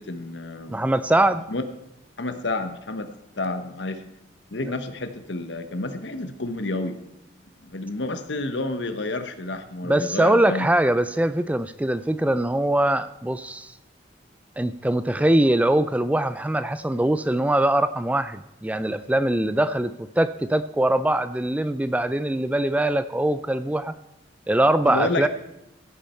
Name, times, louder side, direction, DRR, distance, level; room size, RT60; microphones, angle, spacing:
voice 1, 0.0-0.8 1.5-1.6 2.2-3.1 3.4-4.0 4.5-7.0 7.6-10.7 24.8-25.3, left 2 dB, 75° left, 8 dB, 1.1 m, -29 dB
voice 2, 0.7-1.4 9.8-13.7 14.6-23.9 24.5-25.3, right 1 dB, 10° right, 13 dB, 0.3 m, -22 dB
15.5 x 8.6 x 4.4 m, 0.87 s
head